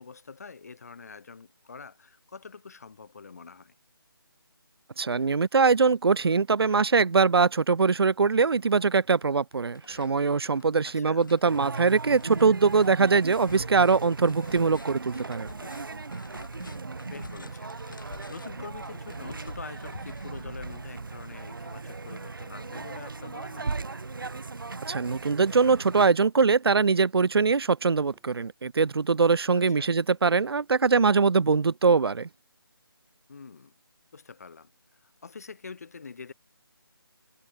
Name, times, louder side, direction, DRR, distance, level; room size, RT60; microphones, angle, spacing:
voice 1, 0.0-3.7 10.8-11.3 16.5-23.7 29.7-29.9 33.3-33.7 34.1-34.7 35.0-36.3, left 5 dB, 40° left, 2.4 m, -45 dB
voice 2, 5.0-15.5 24.9-32.3, right 4 dB, 85° right, 0.5 m, -22 dB
sound 1, 8.5-9.3 9.5-21.2, left 4 dB, 60° left, 2.5 m, -49 dB
sound 2, 11.4-26.1, right 3 dB, 60° right, 1.9 m, -38 dB
sound 3, 17.4-17.8 18.2-18.5 18.9-19.2 19.7-20.8 21.3-21.6 22.0-22.3 22.8-23.2 23.6-23.9 24.4-24.7 25.1-25.4 25.9-26.2 26.6-27.0 27.4-28.5 28.9-29.2 29.6-29.9 30.3-30.6 31.0-31.6 31.9-32.2, right 8 dB, 5° right, 5.4 m, -64 dB
figure-of-eight pair, 170°, 12 cm